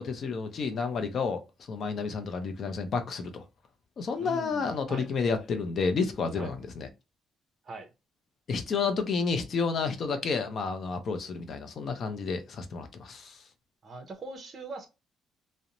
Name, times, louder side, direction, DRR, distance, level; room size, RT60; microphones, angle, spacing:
voice 1, 0.0-3.4 4.0-6.9 8.5-13.4, left 5 dB, 45° left, 0.5 m, -30 dB
voice 2, 4.2-5.1 6.4-6.5 7.6-7.9 13.8-14.9, right 3 dB, 35° right, 0.6 m, -41 dB
2.5 x 2.0 x 2.8 m
cardioid pair, 140°, 0 cm